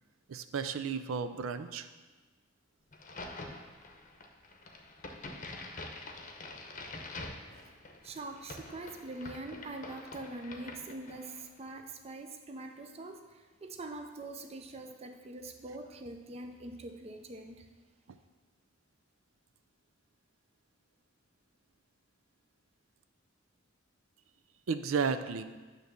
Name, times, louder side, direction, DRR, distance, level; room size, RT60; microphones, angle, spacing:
voice 1, 0.3-1.9 24.7-25.4, right 5 dB, 85° right, 10 dB, 0.5 m, -33 dB
Crack, 2.9-11.5, left 2 dB, 40° left, 0.8 m, -46 dB
voice 2, 7.7-17.7, right 2 dB, 30° right, 4 dB, 0.5 m, -44 dB
9.0 x 3.2 x 6.6 m, 1.3 s
head